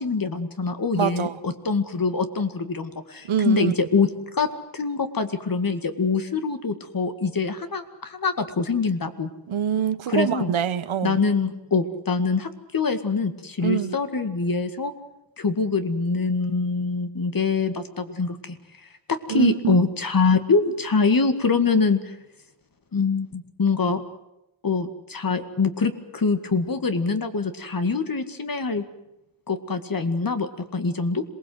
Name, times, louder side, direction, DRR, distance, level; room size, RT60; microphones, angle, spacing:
voice 1, 0.0-9.3 10.1-10.5 11.0-14.9 15.4-18.6 19.1-22.2 22.9-24.0 24.6-28.8 29.5-31.2, left 4 dB, 45° left, 2.1 m, -24 dB
voice 2, 0.9-1.4 3.3-3.7 9.5-11.2 13.6-14.0 19.3-19.8, right 9 dB, 85° right, 1.1 m, -25 dB
27.0 x 20.0 x 8.0 m
wide cardioid pair, 95°, 47 cm